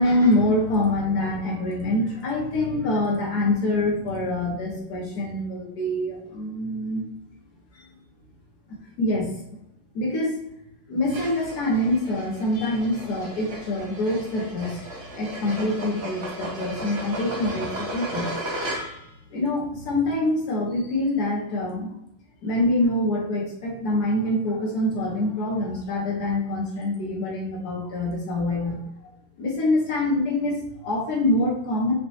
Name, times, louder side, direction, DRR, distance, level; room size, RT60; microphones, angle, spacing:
voice 1, 0.0-7.0 7.7-7.9 9.0-9.3 9.9-10.4 10.9-14.9 15.2-18.3 19.3-21.9 22.4-28.8 29.4-31.9, left 1 dB, 50° left, -2 dB, 1.5 m, -25 dB
sound 1, 11.1-19.2, right 1 dB, 45° right, 0.9 m, -35 dB
5.4 x 2.9 x 2.9 m, 0.80 s
omnidirectional pair, 2.4 m